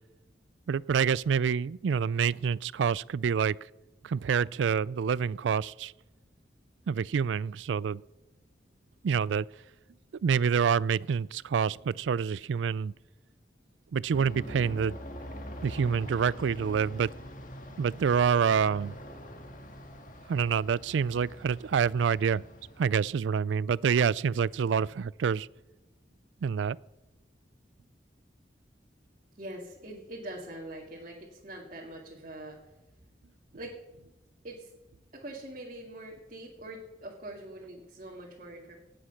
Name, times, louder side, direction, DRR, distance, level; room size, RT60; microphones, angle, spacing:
voice 1, 0.7-3.6 4.0-5.9 6.9-8.0 9.0-9.5 10.2-12.9 13.9-15.0 15.6-17.1 17.8-18.9 20.3-22.4 22.8-25.5 26.4-26.8, right 6 dB, 90° right, 0.4 m, -27 dB
Aircraft, 14.1-23.1, equal, 45° left, 1.6 m, -44 dB
voice 2, 29.4-32.6 33.5-33.8 34.4-34.7 35.1-38.8, right 1 dB, 45° right, 2.0 m, -43 dB
18.5 x 7.8 x 5.9 m
head